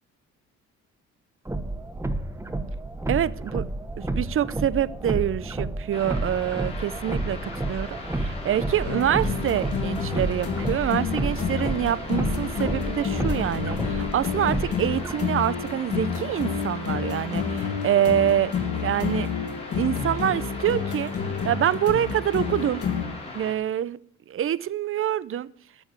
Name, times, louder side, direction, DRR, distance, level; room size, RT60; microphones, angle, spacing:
sound 1, 1.5-15.1, right 2 dB, 10° right, 1.2 m, -31 dB
voice 1, 3.1-3.6 4.2-18.5 18.8-19.3 19.7-21.1 21.5-22.8 23.3-24.0 24.3-25.5, right 10 dB, 45° right, 0.6 m, -26 dB
sound 2, 5.9-23.5, left 2 dB, 20° left, 4.5 m, -39 dB
sound 3, 8.9-23.1, left 6 dB, 50° left, 2.1 m, -30 dB
12.0 x 7.1 x 8.2 m
cardioid pair, 90°, 30 cm